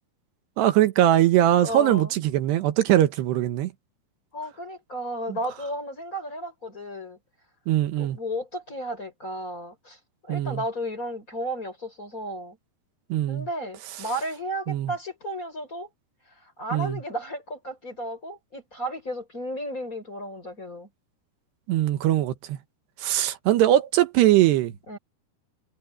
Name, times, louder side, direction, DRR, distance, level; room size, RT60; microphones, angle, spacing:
voice 1, 0.6-3.7 7.7-8.2 10.3-10.6 13.1-13.5 14.7-14.9 16.7-17.0 21.7-22.6 23.0-24.7, right 13 dB, 80° right, 3.3 m, -21 dB
voice 2, 1.6-2.1 4.3-7.2 8.0-12.6 13.3-15.9 16.4-20.9 24.9-25.0, equal, 20° left, 5.5 m, -33 dB
omnidirectional pair, 4.8 m